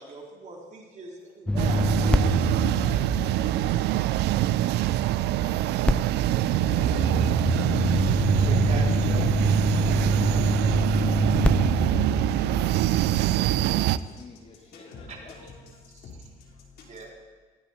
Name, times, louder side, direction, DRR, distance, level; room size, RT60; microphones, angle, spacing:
voice 1, 0.0-2.4 2.6-3.0 8.1-9.9 15.1-15.5 15.9-16.1 16.8-17.1, right 3 dB, 45° right, -1 dB, 3.9 m, -41 dB
voice 2, 1.5-2.0 2.3-2.5 3.5-4.0 13.3-15.5, left 4 dB, 35° left, 2 dB, 2.1 m, -52 dB
sound 1, 1.5-4.6 5.9-12.8, left 1 dB, 5° left, 0.5 m, -26 dB
sound 2, 1.6-14.0, right 14 dB, 80° right, 0.5 m, -24 dB
voice 3, 13.0-13.5 14.2-14.3 14.7-16.8, left 3 dB, 70° left, -1 dB, 4.4 m, -47 dB
18.5 x 16.0 x 4.6 m, 1.4 s
cardioid pair, 110°, 17 cm